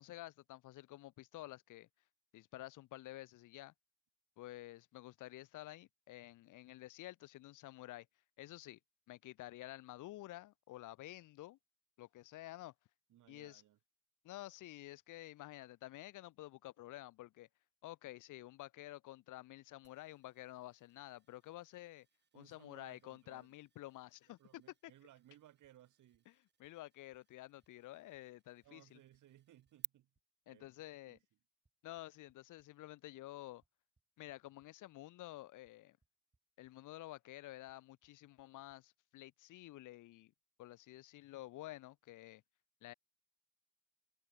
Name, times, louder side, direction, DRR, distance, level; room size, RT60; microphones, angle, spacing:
voice 1, 0.0-1.9 2.3-3.7 4.4-8.1 8.4-8.8 9.1-11.6 12.0-12.7 13.3-13.6 14.2-17.5 17.8-22.1 22.3-24.9 26.3-29.0 30.5-31.2 31.8-33.6 34.2-36.0 36.6-40.3 40.6-42.4 42.8-42.9, left 16 dB, 85° left, 1.3 m, -51 dB
voice 2, 13.1-13.8 22.3-23.5 24.4-26.2 28.6-30.1 30.5-30.7 31.1-31.2, right 13 dB, 80° right, 6.7 m, -63 dB
sound 1, 19.8-29.9, right 7 dB, 35° right, 1.2 m, -57 dB
sound 2, 26.1-26.2 26.6-26.7 27.1-27.2 27.6-27.7 28.1-28.2 28.6-28.7 29.1-29.2 29.7-29.8 30.2-30.3 30.6-30.7 31.2-31.3 31.7-32.7 33.6-34.7 35.7-35.8 36.0-36.4 36.6-36.7 37.7-37.8 38.0-38.1 38.4-38.5 38.7-38.8, right 3 dB, 20° right, 5.9 m, -80 dB
cardioid pair, 90°, 30 cm